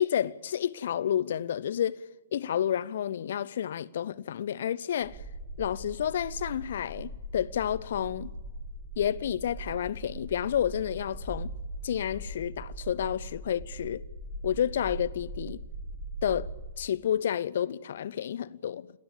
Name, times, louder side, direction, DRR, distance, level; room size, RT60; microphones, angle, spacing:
voice 1, 0.0-2.0 2.3-5.2 5.6-8.3 9.0-11.5 11.8-14.0 14.4-15.6 16.2-16.5 16.8-19.0, left 9 dB, 55° left, 0.8 m, -30 dB
sound 1, 5.0-16.7, right 1 dB, 10° right, 6.5 m, -40 dB
29.5 x 18.5 x 7.0 m
figure-of-eight pair, 115°, 0 cm